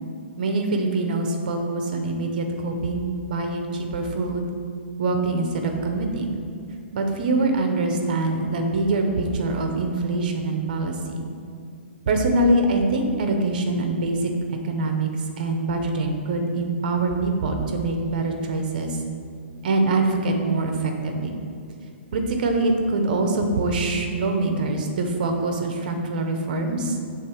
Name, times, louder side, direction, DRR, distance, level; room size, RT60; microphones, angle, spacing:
voice 1, 0.4-4.5 5.0-6.4 6.9-11.2 12.1-15.1 15.4-19.0 19.6-21.4 22.1-27.0, right 2 dB, 45° right, 4 dB, 0.7 m, -24 dB
6.7 x 3.5 x 4.4 m, 2.3 s
hypercardioid pair, 175°, 7 cm